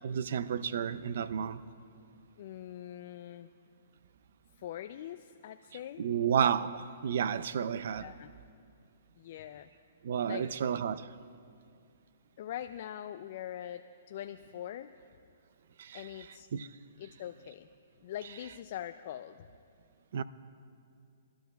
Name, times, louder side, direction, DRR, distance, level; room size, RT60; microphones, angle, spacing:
voice 1, 0.0-1.6 6.0-8.1 10.0-11.1 15.8-16.0 16.5-16.7 20.1-20.2, right 8 dB, 60° right, 0.4 m, -31 dB
voice 2, 2.4-3.5 4.6-6.1 8.0-8.3 9.2-9.7 10.3-10.5 12.4-14.9 15.9-16.5 17.0-17.7 18.0-19.5, left 11 dB, 50° left, 0.3 m, -43 dB
23.5 x 12.5 x 2.3 m
hypercardioid pair, 155°, 0 cm